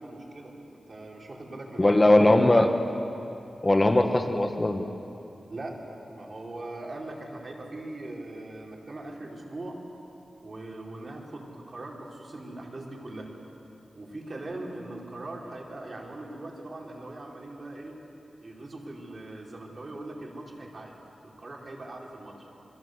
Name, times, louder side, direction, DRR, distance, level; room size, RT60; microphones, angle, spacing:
voice 1, 0.0-2.4 5.5-9.8 10.4-13.3 14.0-17.9 18.4-20.9 21.2-22.3, right 2 dB, 40° right, -1 dB, 4.5 m, -40 dB
voice 2, 1.8-2.8 3.6-4.8, left 1 dB, 25° left, 5 dB, 1.3 m, -20 dB
27.5 x 22.5 x 8.0 m, 2.8 s
wide cardioid pair, 105°, 0 cm